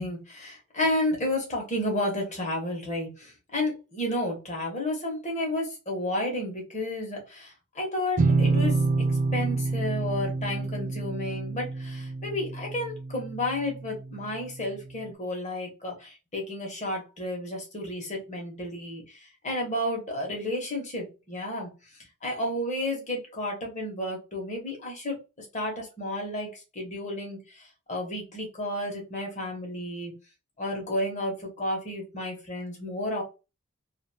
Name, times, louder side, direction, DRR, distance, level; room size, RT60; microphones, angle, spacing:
voice 1, 0.0-8.8 9.3-21.7 22.2-30.1 30.6-33.2, left 1 dB, 30° left, 0 dB, 1.0 m, -32 dB
sound 1, 8.2-13.8, right 3 dB, 35° right, 0.3 m, -27 dB
2.6 x 2.5 x 2.7 m, 0.29 s
head